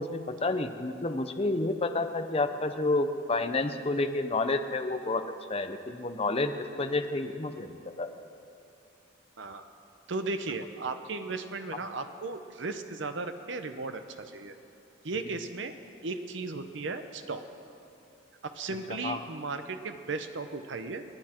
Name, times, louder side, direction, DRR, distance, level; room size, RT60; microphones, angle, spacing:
voice 1, 0.0-5.2 5.5-8.1 19.0-19.2, left 2 dB, 30° left, 8 dB, 0.7 m, -30 dB
voice 2, 10.1-14.5 15.0-15.8 16.0-17.4 18.4-21.0, right 3 dB, 65° right, 8 dB, 0.8 m, -36 dB
27.5 x 9.8 x 4.5 m, 2.6 s
head